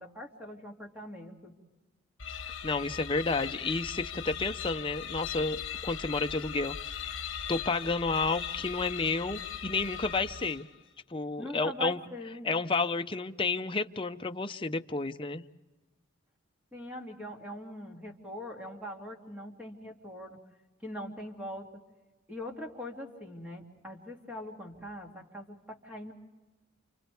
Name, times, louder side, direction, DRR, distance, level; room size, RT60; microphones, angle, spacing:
voice 1, 0.0-1.5 11.4-12.5 16.7-20.4 20.8-21.7 22.3-26.1, equal, 5° right, 0 dB, 2.7 m, -42 dB
sound 1, 2.2-10.9, left 8 dB, 65° left, 1.4 m, -39 dB
voice 2, 2.6-7.2 7.5-10.7 11.1-12.0 12.4-15.4, left 3 dB, 25° left, 6 dB, 0.7 m, -31 dB
29.5 x 29.5 x 3.5 m, 1.2 s
head